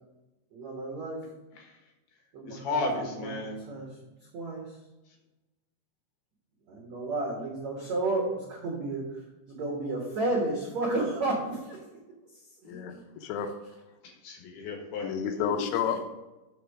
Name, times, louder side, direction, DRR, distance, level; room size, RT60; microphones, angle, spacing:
voice 1, 0.5-1.2 2.3-2.8 3.2-3.3 3.7-3.9 4.3-4.7 6.7-9.0 9.5-11.8 12.6-13.0, right 2 dB, 80° right, -3 dB, 1.5 m, -31 dB
voice 2, 2.5-3.6 14.2-15.2, left 2 dB, 65° left, 0 dB, 3.1 m, -33 dB
voice 3, 12.7-13.5 15.0-16.0, left 7 dB, 80° left, 6 dB, 3.3 m, -30 dB
7.2 x 7.0 x 4.8 m, 1.0 s
omnidirectional pair, 5.8 m